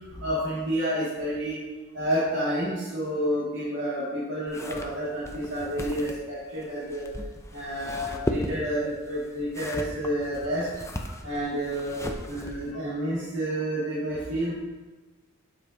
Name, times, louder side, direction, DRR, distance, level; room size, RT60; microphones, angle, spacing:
voice 1, 0.1-1.6 1.9-7.1 7.5-12.0 12.3-14.5, equal, 60° right, -10 dB, 2.4 m, -29 dB
sound 1, 4.5-12.7, left 1 dB, 15° left, 0.5 m, -37 dB
12.0 x 5.4 x 2.9 m, 1.2 s
head